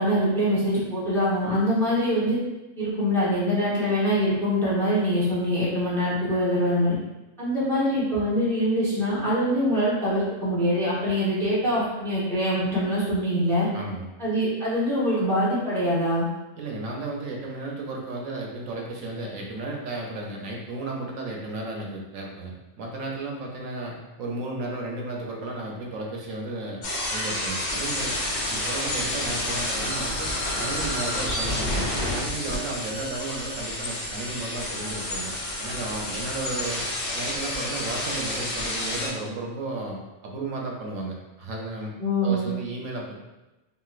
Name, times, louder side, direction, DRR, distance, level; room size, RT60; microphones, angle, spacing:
voice 1, 0.0-2.4 2.8-6.9 7.4-13.7 14.2-16.2 42.0-42.5, equal, ahead, -9 dB, 0.7 m, -24 dB
voice 2, 13.7-14.1 16.6-26.8 27.1-28.1 28.5-30.3 30.6-35.3 35.6-36.9 37.1-41.9 42.2-43.2, right 2 dB, 80° right, -1 dB, 1.0 m, -34 dB
sound 1, 26.8-39.1, left 1 dB, 55° left, 0.7 m, -29 dB
2.9 x 2.7 x 2.4 m, 1.0 s
omnidirectional pair, 1.4 m